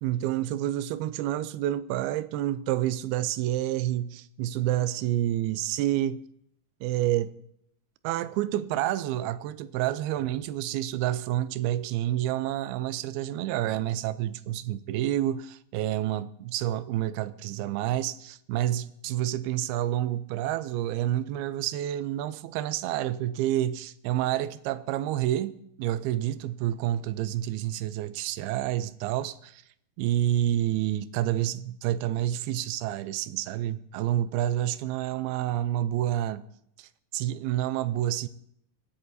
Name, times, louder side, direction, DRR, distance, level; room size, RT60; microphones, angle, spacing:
voice 1, 0.0-6.2 6.8-7.4 8.0-29.6 30.0-36.4 36.8-38.3, right 13 dB, 90° right, 2.5 m, -29 dB
26.0 x 10.0 x 2.7 m
omnidirectional pair, 4.4 m